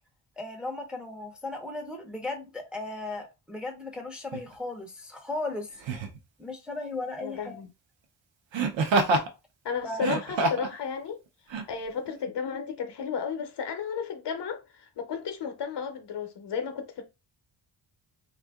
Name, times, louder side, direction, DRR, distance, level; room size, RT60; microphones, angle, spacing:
voice 1, 0.4-5.7 6.4-7.6 9.8-10.0, left 2 dB, ahead, 0.5 m, -36 dB
Laughter, 4.3-4.5 5.8-6.2 8.5-9.3 9.9-10.7 11.5-11.6, right 3 dB, 70° right, 0.8 m, -26 dB
voice 2, 7.2-7.7 9.6-11.2 11.7-17.0, left 6 dB, 60° left, 0.7 m, -33 dB
2.6 x 2.5 x 3.4 m
wide cardioid pair, 135°, 47 cm